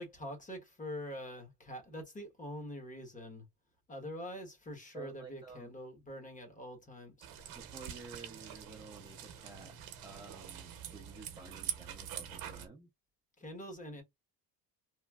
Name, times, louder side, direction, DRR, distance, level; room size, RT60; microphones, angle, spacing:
voice 1, 0.0-3.4 3.9-7.3 13.4-14.0, equal, 20° left, 1.1 m, -45 dB
voice 2, 4.9-5.7 7.6-9.8 10.0-12.9, right 4 dB, 10° right, 0.5 m, -52 dB
sound 1, 7.2-12.7, right 10 dB, 70° right, 0.8 m, -45 dB
3.0 x 2.5 x 2.3 m
cardioid pair, 135°, 37 cm